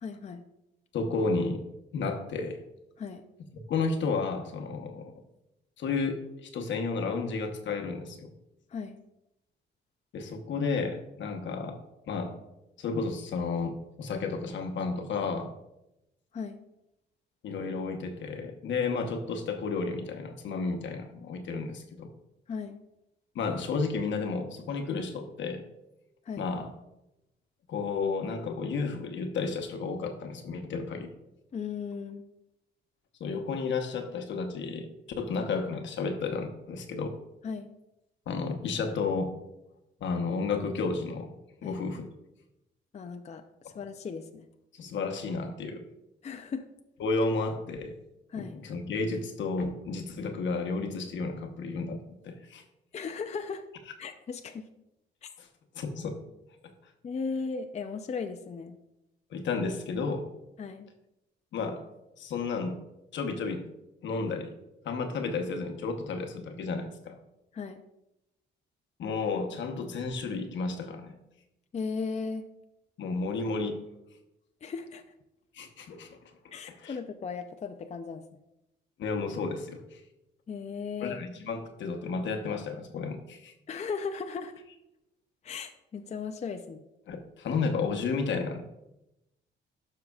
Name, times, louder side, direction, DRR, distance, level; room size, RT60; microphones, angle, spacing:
voice 1, 0.0-0.4 3.0-3.2 8.7-9.0 16.3-16.6 22.5-22.8 26.3-26.5 31.5-32.2 37.4-37.7 41.6-41.8 42.9-44.5 46.2-46.7 48.3-48.6 52.9-53.6 54.0-54.7 55.2-55.3 57.0-58.8 60.6-60.9 67.5-67.8 71.7-72.5 74.6-75.0 76.5-78.2 80.5-81.2 83.7-84.6 85.4-86.8, left 5 dB, 35° left, 6 dB, 0.5 m, -36 dB
voice 2, 0.9-1.6 1.9-2.6 3.5-5.1 5.8-8.3 10.1-11.8 12.1-12.4 12.8-15.5 17.4-22.1 23.3-25.6 26.4-26.7 27.7-31.1 33.2-34.9 35.2-37.2 38.3-39.3 40.0-41.3 41.6-42.1 44.7-45.8 47.0-47.9 48.4-52.6 55.4-55.5 55.7-56.2 56.6-56.7 59.3-60.3 61.5-61.9 62.2-62.8 63.1-63.7 64.0-64.5 64.8-67.2 69.0-71.1 73.0-73.8 75.5-76.2 76.7-77.0 79.0-80.0 81.0-83.5 87.1-88.6, left 4 dB, 70° left, 5 dB, 1.0 m, -32 dB
12.0 x 5.6 x 2.4 m, 0.89 s
cardioid pair, 90°, 20 cm